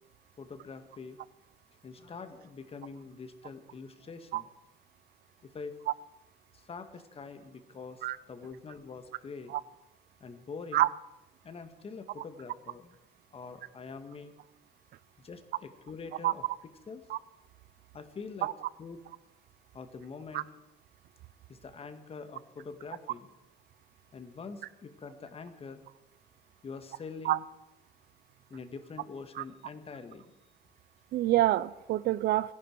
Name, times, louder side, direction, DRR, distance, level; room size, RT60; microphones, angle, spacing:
voice 1, 0.4-1.2 1.8-4.5 5.4-5.8 6.5-9.5 10.2-10.9 11.4-13.0 13.3-14.3 15.2-17.0 17.9-18.5 18.8-19.0 19.7-20.5 21.5-23.3 24.1-25.8 26.6-27.4 28.5-30.2, left 4 dB, 35° left, 1.9 m, -45 dB
voice 2, 31.1-32.5, right 15 dB, 70° right, 0.6 m, -26 dB
27.0 x 11.5 x 4.7 m
cardioid pair, 110°, 17 cm